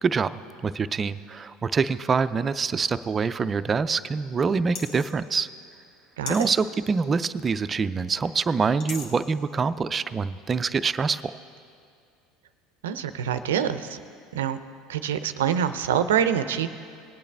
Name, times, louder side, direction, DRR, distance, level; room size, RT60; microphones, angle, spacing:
voice 1, 0.0-5.5 6.3-11.2, right 5 dB, 30° right, 13 dB, 0.4 m, -25 dB
sound 1, 4.8-5.1 6.3-6.6 8.8-9.1, left 5 dB, 65° left, 1.6 m, -36 dB
voice 2, 12.8-14.0 14.3-14.6 14.9-16.7, right 9 dB, 85° right, 11 dB, 0.5 m, -25 dB
20.0 x 8.5 x 3.4 m, 2.4 s
hypercardioid pair, 85°, 0 cm